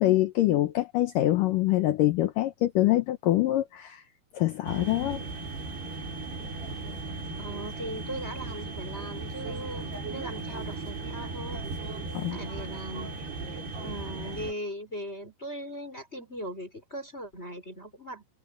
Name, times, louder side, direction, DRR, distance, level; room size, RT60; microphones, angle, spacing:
voice 1, 0.0-4.0 4.3-5.2 12.1-12.4, left 15 dB, 80° left, 2.0 m, -25 dB
sound 1, 4.7-14.5, right 3 dB, 75° right, 8.3 m, -37 dB
voice 2, 7.4-11.7 12.3-13.1 13.8-18.2, equal, 15° left, 5.5 m, -39 dB
omnidirectional pair, 4.8 m